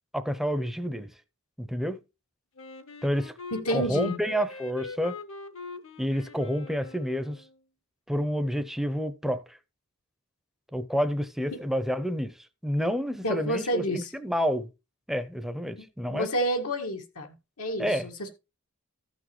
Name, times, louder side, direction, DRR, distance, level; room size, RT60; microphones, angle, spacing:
voice 1, 0.1-1.1 1.6-2.0 3.0-3.3 3.7-5.2 6.0-7.4 8.1-9.6 10.7-12.3 12.6-13.8 14.1-14.7 15.1-16.3 17.8-18.1, equal, ahead, 0.6 m, -29 dB
Wind instrument woodwind instrument, 2.6-7.6, left 4 dB, 65° left, 1.0 m, -42 dB
voice 2, 3.5-4.2 13.2-14.1 16.1-18.3, equal, 90° left, 1.8 m, -29 dB
14.5 x 6.2 x 3.1 m
head